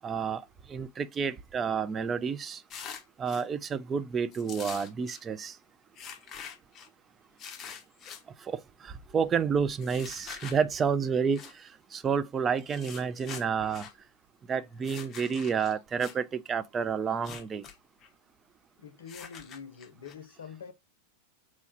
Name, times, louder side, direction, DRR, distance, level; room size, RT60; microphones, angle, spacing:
voice 1, 0.0-0.4 0.7-2.6 3.2-5.5 8.5-11.4 11.9-13.9 14.5-17.6, right 6 dB, 20° right, 0.4 m, -30 dB
sound 1, 2.7-3.4 4.3-5.2 6.0-6.9 7.4-8.2 9.8-10.6 11.3-11.5 12.6-13.9 14.8-16.2 17.1-17.8 18.0-18.1 19.1-20.1, left 7 dB, 30° left, 0.6 m, -44 dB
voice 2, 18.8-20.7, left 6 dB, 65° left, 0.7 m, -45 dB
3.0 x 2.3 x 4.2 m
figure-of-eight pair, 90°, 0 cm